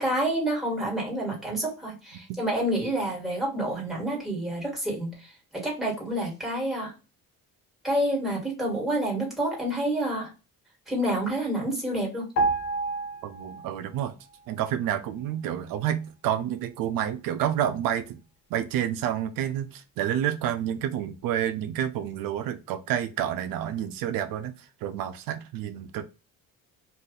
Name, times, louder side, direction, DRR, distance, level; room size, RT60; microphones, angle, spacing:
voice 1, 0.0-6.9 7.8-10.3 10.9-12.3, right 1 dB, ahead, 1.7 m, -28 dB
sound 1, 12.4-14.0 14.3-14.5, right 3 dB, 60° left, 0.8 m, -29 dB
voice 2, 13.2-14.2 14.5-18.2 18.5-26.0, right 10 dB, 85° right, 0.5 m, -29 dB
2.6 x 2.4 x 3.7 m
cardioid pair, 135°, 33 cm